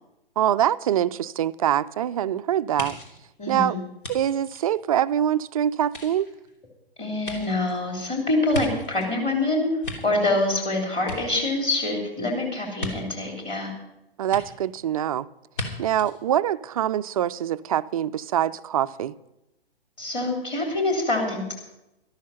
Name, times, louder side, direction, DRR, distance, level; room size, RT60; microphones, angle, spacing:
voice 1, 0.4-3.0 3.5-3.8 4.1-6.3 14.2-15.3 15.8-19.1, right 11 dB, 35° right, 0.4 m, -24 dB
sound 1, 2.8-5.4 5.8-9.2 9.6-10.7 11.0-11.9 12.8-12.9 14.3-14.4 15.5-15.7 16.0-16.1, left 2 dB, 60° left, 3.2 m, -36 dB
voice 2, 3.4-3.8 7.0-9.7 10.0-13.7 20.0-21.5, left 2 dB, 20° left, 3.2 m, -25 dB
13.0 x 12.5 x 5.7 m
figure-of-eight pair, 120°, 30 cm